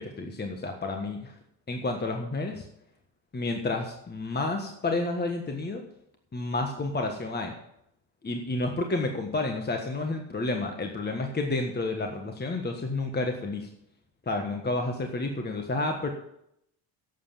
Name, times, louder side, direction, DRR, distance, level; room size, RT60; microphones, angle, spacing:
voice 1, 0.0-1.3 1.7-2.7 3.3-5.8 6.3-7.5 8.2-13.7 14.3-16.1, left 2 dB, 20° left, 4 dB, 1.5 m, -30 dB
11.0 x 8.1 x 7.3 m, 0.76 s
cardioid pair, 105°, 44 cm